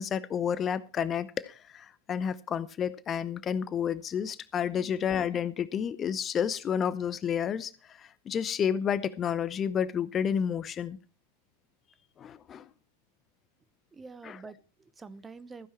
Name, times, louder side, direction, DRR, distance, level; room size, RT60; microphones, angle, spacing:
voice 1, 0.0-11.0 12.2-12.7 14.2-14.4, left 8 dB, 25° left, 0.7 m, -30 dB
voice 2, 13.9-15.7, right 4 dB, 15° right, 0.8 m, -47 dB
15.0 x 10.5 x 4.7 m
figure-of-eight pair, 90°, 0 cm